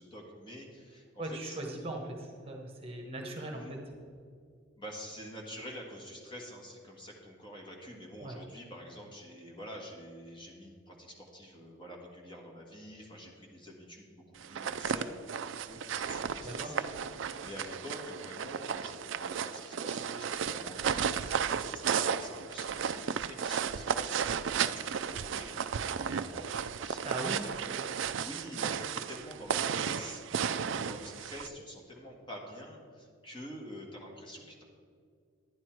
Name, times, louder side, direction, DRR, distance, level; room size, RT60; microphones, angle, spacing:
voice 1, 0.0-1.6 3.5-3.8 4.8-16.9 17.2-30.2 30.7-34.6, equal, 25° left, 0 dB, 1.6 m, -47 dB
voice 2, 1.2-3.8 8.2-8.4 16.4-16.8 27.0-27.4, right 2 dB, 30° right, 2 dB, 1.1 m, -39 dB
sound 1, 14.4-31.5, right 7 dB, 60° right, 0.4 m, -34 dB
10.5 x 9.7 x 4.6 m, 2.3 s
head